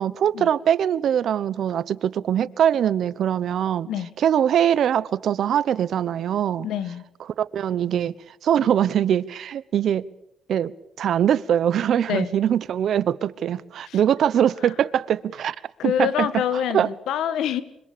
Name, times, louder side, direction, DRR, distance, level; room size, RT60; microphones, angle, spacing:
voice 1, 0.0-3.9 4.2-6.7 7.4-8.1 8.4-10.0 10.5-15.6 15.8-16.3 16.7-16.9, right 9 dB, 65° right, 1.0 m, -22 dB
voice 2, 6.6-7.0 12.1-12.3 13.9-14.0 15.8-17.6, left 9 dB, 80° left, 1.7 m, -26 dB
25.5 x 25.0 x 6.8 m
cardioid pair, 90°, 0 cm